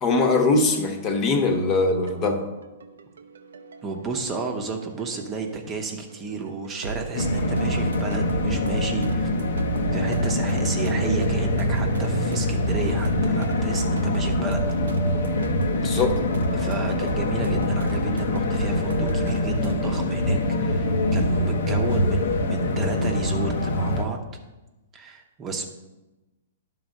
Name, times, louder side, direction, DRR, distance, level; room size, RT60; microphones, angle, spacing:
voice 1, 0.0-2.5 15.7-16.2, left 3 dB, 30° left, 5 dB, 1.1 m, -22 dB
sound 1, 1.0-19.8, right 4 dB, 85° right, 0.6 m, -37 dB
voice 2, 3.8-9.3 9.9-14.6 15.9-16.0 16.5-24.2 24.9-25.6, right 4 dB, 20° right, 3 dB, 0.9 m, -32 dB
sound 2, 7.1-24.0, left 1 dB, 70° left, 0.9 m, -24 dB
10.5 x 4.0 x 6.4 m, 1.1 s
hypercardioid pair, 140°, 0 cm